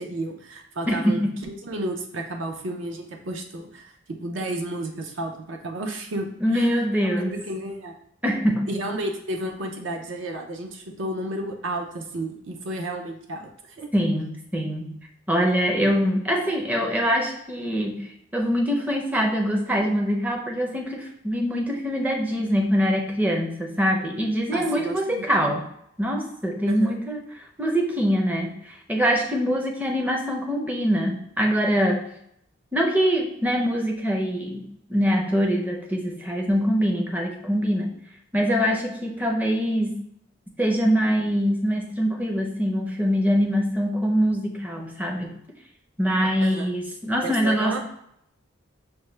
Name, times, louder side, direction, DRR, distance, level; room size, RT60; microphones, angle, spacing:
voice 1, 0.0-7.9 8.7-13.9 24.5-25.3 26.7-27.0 46.4-46.7 47.2-47.8, right 1 dB, 65° right, 2 dB, 0.6 m, -32 dB
voice 2, 0.9-1.4 6.4-7.4 8.2-8.7 13.9-14.9 15.3-25.6 26.0-32.1 32.7-37.9 38.3-40.0 40.6-45.3 46.0-47.8, equal, 10° right, 1 dB, 0.5 m, -24 dB
5.8 x 2.2 x 3.2 m, 0.73 s
head